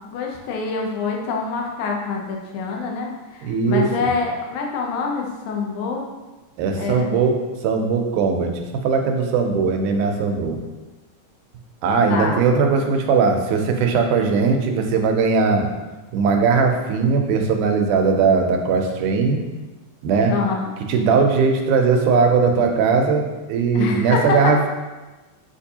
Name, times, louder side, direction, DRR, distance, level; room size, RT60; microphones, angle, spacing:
voice 1, 0.1-6.0 6.8-7.1 12.1-12.4 20.3-20.7 23.7-24.5, left 4 dB, 80° left, 0 dB, 2.1 m, -25 dB
voice 2, 3.4-3.9 6.6-7.4 7.6-8.5 8.8-10.6 11.8-15.7 16.1-19.4 20.0-20.3 20.9-24.7, right 5 dB, 85° right, 3 dB, 2.0 m, -19 dB
6.5 x 2.6 x 2.7 m, 1.2 s
omnidirectional pair, 3.5 m